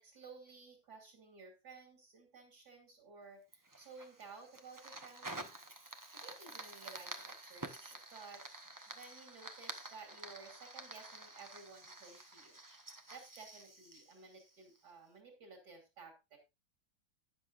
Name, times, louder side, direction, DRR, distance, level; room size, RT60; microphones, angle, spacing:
voice 1, 0.0-5.4 6.1-16.4, right 4 dB, 55° right, 3 dB, 3.2 m, -55 dB
Fire, 3.5-14.9, right 2 dB, 20° right, 0.5 m, -50 dB
12.5 x 10.0 x 2.5 m, 0.25 s
omnidirectional pair, 2.2 m